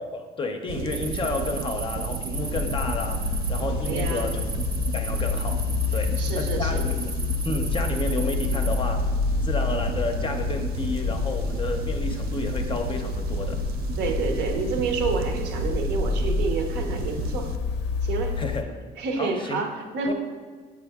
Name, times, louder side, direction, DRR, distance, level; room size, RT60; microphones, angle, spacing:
voice 1, 0.0-4.4 4.9-5.6 5.9-7.1 7.4-13.7 18.4-18.7 19.2-19.6 20.0-20.1, left 3 dB, 30° left, 5 dB, 0.5 m, -31 dB
sound 1, 0.7-17.6, right 6 dB, 65° right, 0.4 m, -33 dB
sound 2, 0.9-8.8, right 3 dB, 25° right, 0.7 m, -37 dB
sound 3, 2.3-18.6, left 5 dB, 85° left, 0.5 m, -29 dB
voice 2, 3.8-4.3 6.2-6.9 14.0-17.5 18.0-18.4 19.0-20.1, right 4 dB, 85° right, 4 dB, 0.9 m, -29 dB
6.2 x 4.9 x 3.4 m, 1.5 s
cardioid pair, 110°, 17 cm